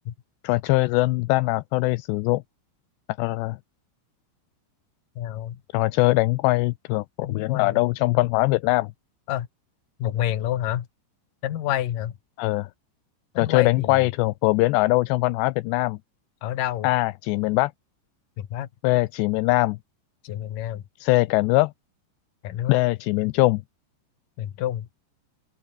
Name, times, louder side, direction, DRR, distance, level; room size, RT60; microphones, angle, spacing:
voice 1, 0.4-2.4 3.2-3.6 5.7-8.9 12.4-12.7 13.4-16.0 16.8-17.7 18.8-19.8 21.0-21.7 22.7-23.6, left 21 dB, 85° left, 2.7 m, -22 dB
voice 2, 5.2-5.6 7.2-7.8 9.3-9.5 10.0-10.9 11.4-12.2 13.3-14.0 16.4-16.9 18.4-18.7 20.2-20.8 22.4-22.8 24.4-24.9, left 12 dB, 60° left, 2.9 m, -28 dB
open air
omnidirectional pair, 5.2 m